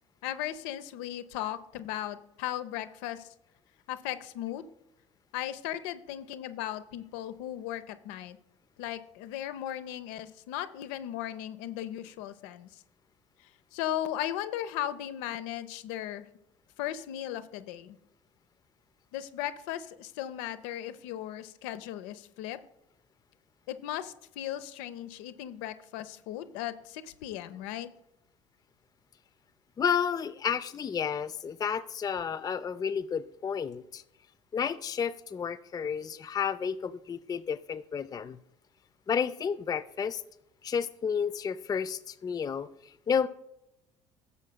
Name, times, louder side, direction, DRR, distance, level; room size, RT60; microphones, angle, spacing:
voice 1, 0.2-3.3 3.9-4.7 5.3-8.4 8.8-12.8 13.4-16.3 16.8-18.0 19.1-22.6 23.7-27.9, left 12 dB, 65° left, 12 dB, 0.7 m, -37 dB
voice 2, 29.8-34.0 34.5-38.4 39.1-40.2 40.6-42.7 43.1-43.3, left 7 dB, 25° left, 15 dB, 0.5 m, -31 dB
16.0 x 7.3 x 2.2 m, 0.88 s
figure-of-eight pair, 60°, 16 cm